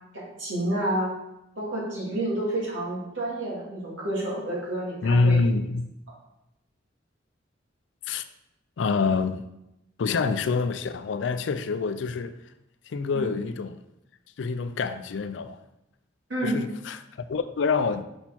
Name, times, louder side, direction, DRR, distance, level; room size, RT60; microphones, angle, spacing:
voice 1, 0.1-1.1 1.6-5.4 13.1-13.3 16.3-16.6, right 1 dB, 90° right, 2.1 m, -29 dB
voice 2, 5.0-5.8 8.1-8.2 8.8-9.4 10.0-12.3 12.9-13.8 14.4-15.6 16.4-17.0 17.3-18.0, left 4 dB, 75° left, 0.4 m, -26 dB
5.7 x 4.3 x 4.2 m
head